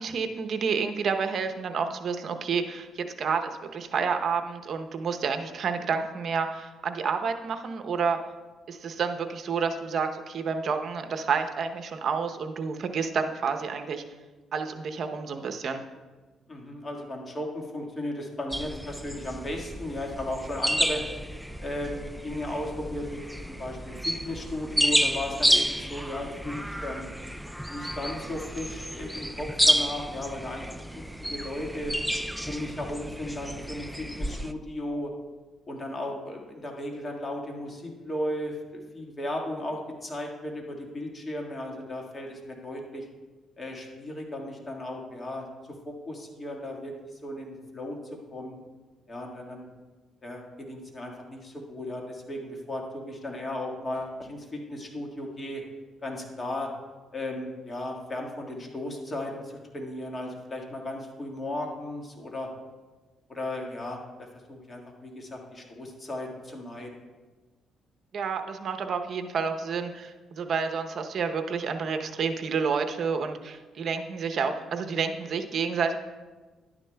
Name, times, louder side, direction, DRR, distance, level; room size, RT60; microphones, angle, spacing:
voice 1, 0.0-8.2 8.7-14.0 14.5-15.8 68.1-76.0, right 5 dB, 55° right, 6 dB, 0.8 m, -29 dB
voice 2, 16.5-21.0 21.6-23.2 23.5-27.1 27.7-30.6 30.9-31.9 32.4-35.1 35.7-43.0 43.6-45.5 45.8-46.9 47.2-48.6 49.1-49.7 50.2-55.6 56.0-56.7 57.1-62.5 63.3-66.9, left 1 dB, 30° left, 0 dB, 1.7 m, -35 dB
sound 1, 18.5-34.5, equal, ahead, 0.3 m, -30 dB
11.5 x 9.8 x 2.3 m, 1.3 s
cardioid pair, 90°, 0 cm